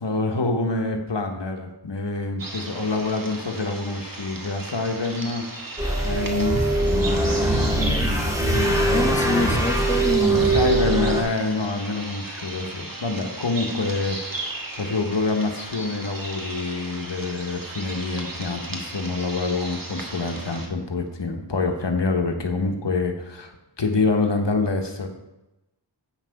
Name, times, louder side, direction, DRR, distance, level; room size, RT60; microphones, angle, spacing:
voice 1, 0.0-5.4 6.0-7.4 8.4-9.4 10.5-23.5 23.8-25.1, left 3 dB, 75° left, 4 dB, 1.1 m, -26 dB
sound 1, 2.4-20.7, right 2 dB, 50° right, 1.5 m, -36 dB
sound 2, 5.8-11.2, right 2 dB, 5° right, 1.9 m, -22 dB
voice 2, 7.6-8.1 8.9-10.5, left 2 dB, 15° left, 3 dB, 1.1 m, -26 dB
8.5 x 5.9 x 5.7 m, 0.96 s
wide cardioid pair, 50°, 43 cm